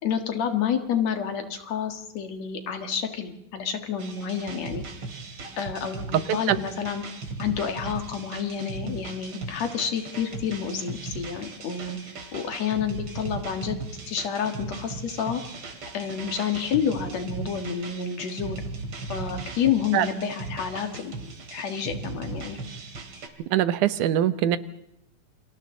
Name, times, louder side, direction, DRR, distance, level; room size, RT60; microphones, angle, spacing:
voice 1, 0.0-4.8 5.6-7.0 7.4-12.0 12.3-15.4 15.9-18.6 19.1-21.1 21.5-22.6, left 7 dB, 65° left, 6 dB, 2.9 m, -29 dB
sound 1, 4.0-23.3, right 3 dB, 45° right, 3.0 m, -38 dB
voice 2, 6.1-6.6 19.9-20.1 23.5-24.6, right 11 dB, 85° right, 13 dB, 2.4 m, -22 dB
28.5 x 25.5 x 3.9 m, 0.80 s
omnidirectional pair, 3.5 m